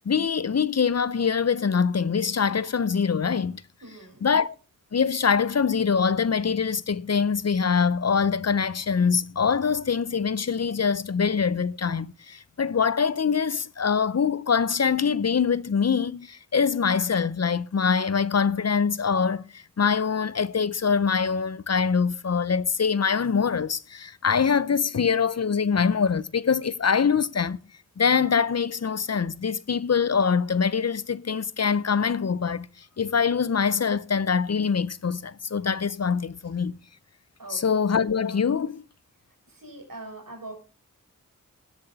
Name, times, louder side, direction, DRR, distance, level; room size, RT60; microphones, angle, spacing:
voice 1, 0.0-3.6 4.2-4.6 4.9-27.6 28.0-32.7 33.0-36.8 37.5-38.8, left 6 dB, 50° left, 0.6 m, -24 dB
voice 2, 3.8-4.3 37.4-37.6 39.5-40.5, right 2 dB, 85° right, 5.4 m, -42 dB
17.0 x 7.9 x 4.0 m
wide cardioid pair, 50°, 33 cm